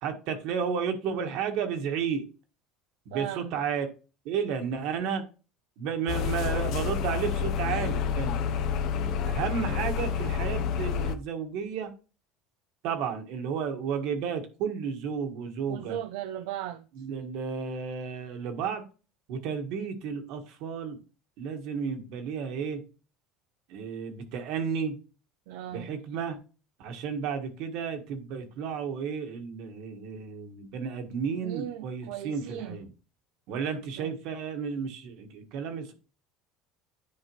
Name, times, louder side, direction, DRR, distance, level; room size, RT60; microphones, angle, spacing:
voice 1, 0.0-2.2 3.0-3.9 4.2-5.2 5.8-8.5 8.9-11.9 12.8-16.0 17.0-18.8 19.3-21.0 21.4-22.8 23.7-25.0 25.7-26.4 26.8-32.9 33.5-35.9, right 6 dB, 65° right, 1.5 m, -32 dB
voice 2, 3.1-3.6 15.7-16.9 25.5-25.9 31.4-32.8 34.0-34.1, right 12 dB, 85° right, 0.4 m, -37 dB
sound 1, 6.1-11.2, left 7 dB, 60° left, 0.7 m, -29 dB
10.0 x 4.8 x 3.1 m
cardioid pair, 135°, 0 cm